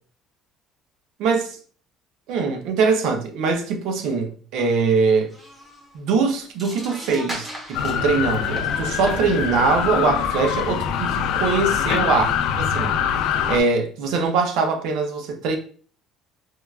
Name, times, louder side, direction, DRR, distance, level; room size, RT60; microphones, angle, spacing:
voice 1, 1.2-1.6 2.3-5.3 5.9-13.0 13.5-15.6, right 4 dB, 70° right, 0.6 m, -22 dB
sound 1, 5.3-6.0 6.3-10.2, right 1 dB, 25° right, 0.9 m, -38 dB
sound 2, 7.7-13.6, left 8 dB, 75° left, 0.3 m, -24 dB
4.5 x 2.3 x 2.3 m
cardioid pair, 165°, 0 cm